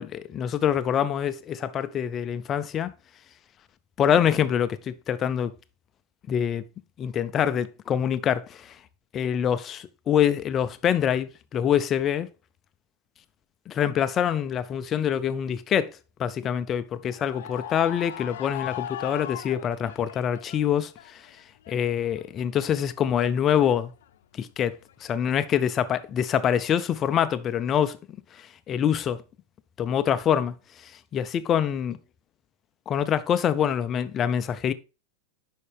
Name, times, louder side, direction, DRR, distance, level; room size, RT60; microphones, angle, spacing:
voice 1, 0.0-2.9 4.0-5.5 6.3-6.6 7.0-8.8 9.1-12.3 13.7-21.3 21.7-23.9 24.3-28.0 28.3-29.2 29.8-30.5 30.8-32.0 32.9-34.7, left 9 dB, 20° left, 0.4 m, -25 dB
sound 1, 17.1-20.7 21.0-22.8 23.2-24.0 24.8-25.1, left 11 dB, 75° left, 0.6 m, -39 dB
8.5 x 5.7 x 3.4 m
supercardioid pair, 180°, 0 cm